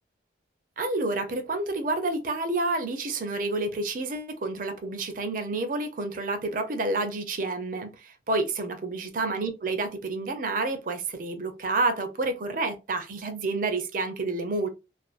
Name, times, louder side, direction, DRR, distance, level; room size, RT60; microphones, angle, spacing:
voice 1, 0.8-14.7, right 2 dB, 45° right, 0.4 m, -29 dB
2.4 x 2.2 x 2.3 m
head